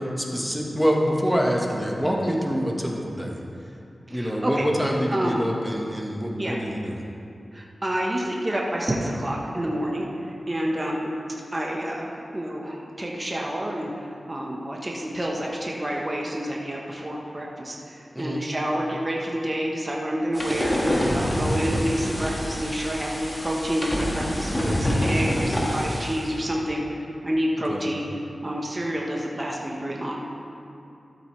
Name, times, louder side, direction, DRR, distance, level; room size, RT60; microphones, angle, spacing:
voice 1, 0.2-3.4 4.1-7.0 18.1-18.4 27.7-27.9, equal, ahead, -1 dB, 1.5 m, -26 dB
voice 2, 4.1-4.6 5.1-5.4 6.4-6.5 7.5-10.1 10.5-11.1 11.5-20.8 21.1-28.0 28.4-30.2, equal, 25° right, -2 dB, 1.2 m, -28 dB
sound 1, 20.3-26.3, equal, 25° left, 1.8 m, -26 dB
13.0 x 8.1 x 3.3 m, 2.6 s
cardioid pair, 55°, 0 cm